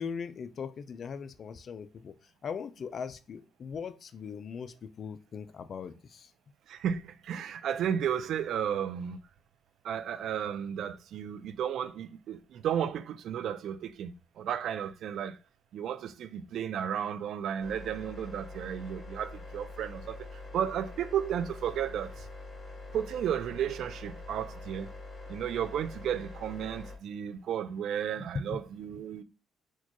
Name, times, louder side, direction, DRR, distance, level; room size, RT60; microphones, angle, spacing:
voice 1, 0.0-2.1 2.4-6.3 28.3-28.6, left 6 dB, 55° left, 0.4 m, -39 dB
voice 2, 6.7-9.2 9.8-15.4 15.7-22.3 22.9-24.9 25.3-29.2, right 9 dB, 75° right, 0.4 m, -33 dB
sound 1, 17.6-27.0, left 2 dB, 35° left, 1.6 m, -45 dB
4.4 x 2.3 x 2.9 m
cardioid pair, 90°, 0 cm